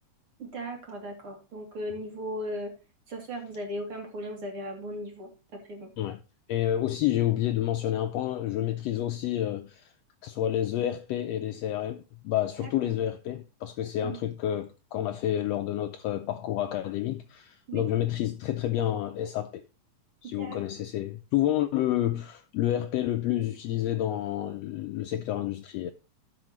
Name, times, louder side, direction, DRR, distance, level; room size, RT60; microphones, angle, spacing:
voice 1, 0.4-2.7 3.1-5.9 12.6-12.7 14.0-14.2 17.7-17.8 20.4-20.6, equal, 45° right, 3.2 m, -37 dB
voice 2, 6.5-9.9 10.2-19.6 20.2-25.9, left 12 dB, 90° left, 1.4 m, -29 dB
17.0 x 6.0 x 3.1 m
omnidirectional pair, 3.6 m